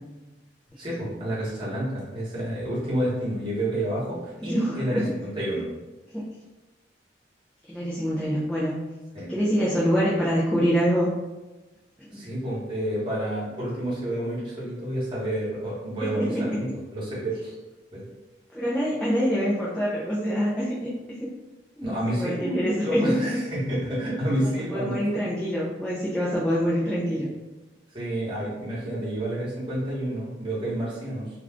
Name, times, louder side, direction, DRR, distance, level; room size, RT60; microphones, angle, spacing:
voice 1, 0.8-5.7 9.1-9.3 12.1-17.6 17.9-18.0 21.8-22.5 22.8-25.2 27.9-31.3, right 1 dB, 30° right, -8 dB, 1.1 m, -29 dB
voice 2, 4.5-5.0 6.1-6.2 7.7-8.8 9.3-11.1 12.1-12.2 16.0-16.6 18.5-20.7 21.1-21.3 21.8-23.1 24.7-27.3, equal, 5° left, -8 dB, 0.4 m, -25 dB
2.4 x 2.3 x 3.4 m, 1.1 s
head